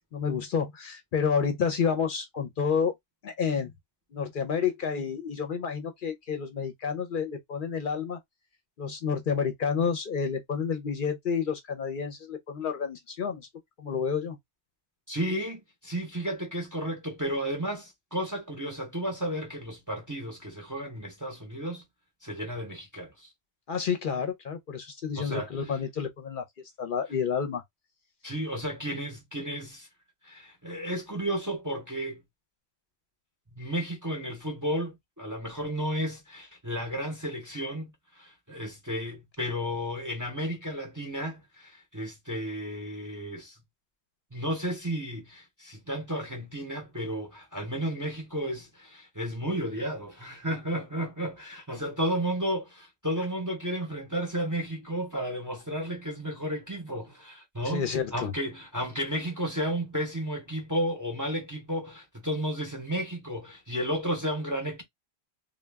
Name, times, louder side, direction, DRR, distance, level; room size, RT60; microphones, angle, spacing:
voice 1, 0.1-2.9 3.2-3.7 4.1-8.2 8.8-13.5 13.8-14.4 23.7-26.4 26.8-27.6 57.6-58.3, left 6 dB, 60° left, 0.7 m, -29 dB
voice 2, 15.1-21.8 22.2-23.3 25.2-25.7 28.2-29.9 30.2-32.2 33.5-43.6 44.3-57.9 58.1-64.8, equal, 20° right, 0.6 m, -33 dB
2.2 x 2.2 x 3.3 m
omnidirectional pair, 1.1 m